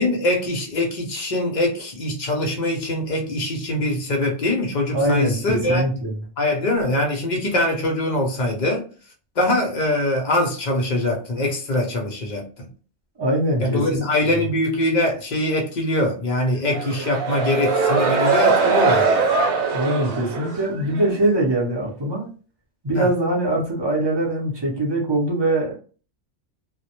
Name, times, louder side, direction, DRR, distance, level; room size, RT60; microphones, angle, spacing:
voice 1, 0.0-5.8 6.4-8.9 9.4-12.7 13.6-19.3 22.9-23.1, left 1 dB, 55° left, 0.5 m, -23 dB
voice 2, 4.9-6.1 13.2-14.4 19.7-22.3 22.8-25.8, right 1 dB, 35° right, 0.4 m, -22 dB
sound 1, 16.7-21.2, right 4 dB, 80° right, 1.0 m, -21 dB
2.1 x 2.0 x 2.8 m
omnidirectional pair, 1.3 m